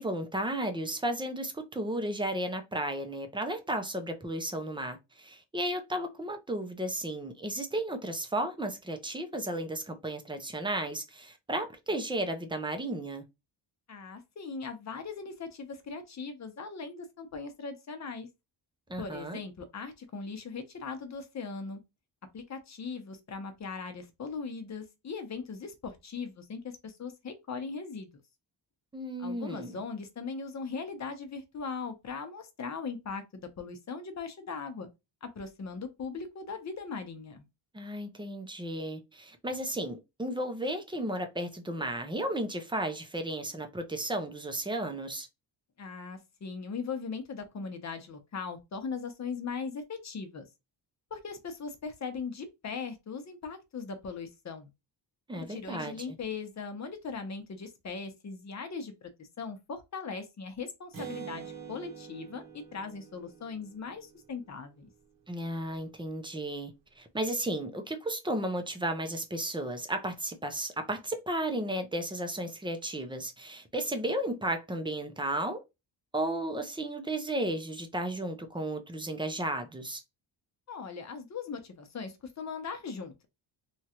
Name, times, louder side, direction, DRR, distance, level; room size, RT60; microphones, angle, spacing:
voice 1, 0.0-13.2 18.9-19.4 28.9-29.8 37.7-45.3 55.3-56.0 65.3-75.6 76.1-80.0, right 1 dB, 10° right, 0.5 m, -34 dB
voice 2, 13.9-18.3 19.0-21.8 22.3-28.1 29.2-34.9 35.2-37.4 45.8-50.5 51.1-54.7 55.5-59.1 59.4-62.4 62.7-64.9 80.7-83.1, left 5 dB, 40° left, 0.8 m, -39 dB
Acoustic guitar, 60.9-64.6, right 7 dB, 45° right, 0.9 m, -45 dB
3.0 x 2.4 x 2.9 m
wide cardioid pair, 125°, 45 cm